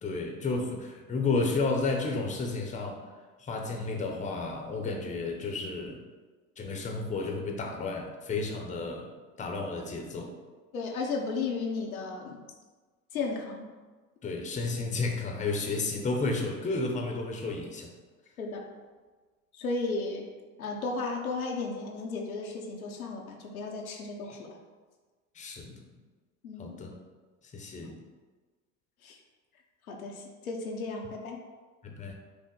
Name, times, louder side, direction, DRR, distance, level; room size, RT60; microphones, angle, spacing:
voice 1, 0.0-3.1 3.4-6.0 6.6-9.1 9.4-10.3 14.2-17.9 24.3-24.4 25.3-25.8 26.6-26.9 27.5-28.0 31.8-32.1, left 3 dB, 20° left, 1 dB, 0.7 m, -32 dB
voice 2, 10.7-12.4 13.1-13.7 18.4-18.7 19.5-20.3 20.6-24.6 26.4-26.8 27.9-28.0 29.0-29.2 29.9-31.4, left 3 dB, 85° left, 1 dB, 0.7 m, -34 dB
6.0 x 2.1 x 3.8 m, 1.4 s
hypercardioid pair, 75°, 41 cm